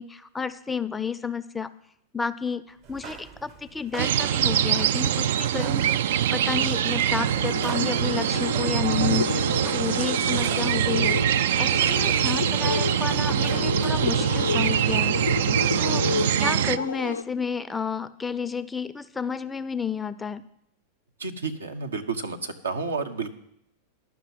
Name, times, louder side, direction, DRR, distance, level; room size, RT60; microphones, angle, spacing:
voice 1, 0.0-1.7 2.1-15.2 15.8-20.4, left 6 dB, 10° left, 14 dB, 0.4 m, -31 dB
sound 1, 2.8-14.7, right 7 dB, 40° right, 0.9 m, -45 dB
sound 2, 4.0-16.8, right 10 dB, 60° right, 0.3 m, -24 dB
sound 3, 7.2-17.2, left 5 dB, 75° left, 0.5 m, -31 dB
voice 2, 21.2-23.3, right 4 dB, 75° right, 5 dB, 0.9 m, -31 dB
10.5 x 6.0 x 9.0 m, 0.76 s
figure-of-eight pair, 90°, 0 cm